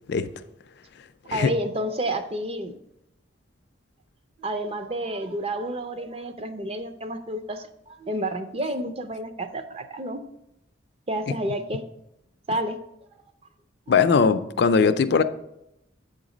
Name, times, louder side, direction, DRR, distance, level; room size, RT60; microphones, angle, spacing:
voice 1, 1.3-2.8 4.4-10.2 11.1-11.8 12.5-12.8, right 1 dB, 30° right, 0.4 m, -30 dB
voice 2, 13.9-15.2, left 5 dB, 55° left, 0.3 m, -20 dB
7.7 x 4.0 x 5.0 m
head